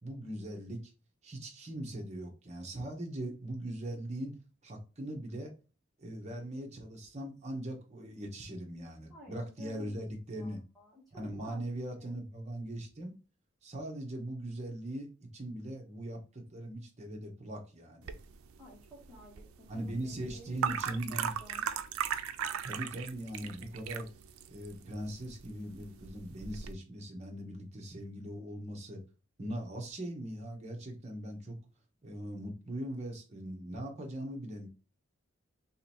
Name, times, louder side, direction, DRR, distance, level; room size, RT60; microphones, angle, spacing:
voice 1, 0.0-0.8 1.2-4.4 4.6-5.5 6.0-10.6 11.1-13.1 13.6-15.1 15.3-18.2 19.7-21.4 22.6-24.1 24.5-29.0 29.4-31.6 32.0-34.7, right 1 dB, 35° right, 1 dB, 0.9 m, -40 dB
voice 2, 9.1-12.2 18.6-21.7, equal, ahead, -6 dB, 1.7 m, -53 dB
sound 1, 18.0-26.7, right 8 dB, 90° right, 0.4 m, -39 dB
3.1 x 2.9 x 4.3 m, 0.33 s
head